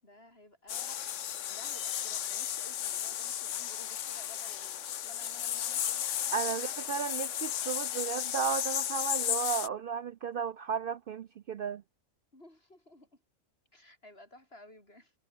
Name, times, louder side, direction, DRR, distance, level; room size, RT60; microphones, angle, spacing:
voice 1, 0.0-1.1 1.5-7.4 12.3-13.2 13.7-15.1, left 1 dB, 45° left, 7.5 m, -54 dB
sound 1, 0.7-9.7, left 10 dB, 65° left, 1.1 m, -34 dB
voice 2, 6.3-11.8, right 7 dB, 65° right, 0.5 m, -34 dB
omnidirectional pair, 1.4 m